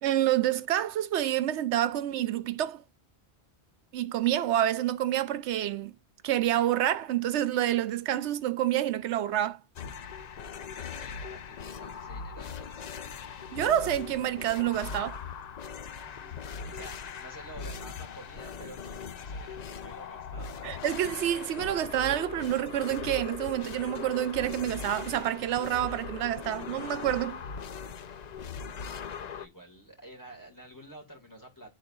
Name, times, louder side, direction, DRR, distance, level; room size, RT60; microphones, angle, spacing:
voice 1, 0.0-2.8 3.9-5.9 6.2-9.6 13.5-15.2 20.6-27.4, right 12 dB, 85° right, 0.9 m, -28 dB
sound 1, 9.8-29.5, left 6 dB, 55° left, 0.5 m, -40 dB
voice 2, 10.7-12.8 16.0-20.5 28.4-31.7, right 1 dB, 15° left, 2.0 m, -50 dB
11.0 x 3.8 x 2.3 m
omnidirectional pair, 1.1 m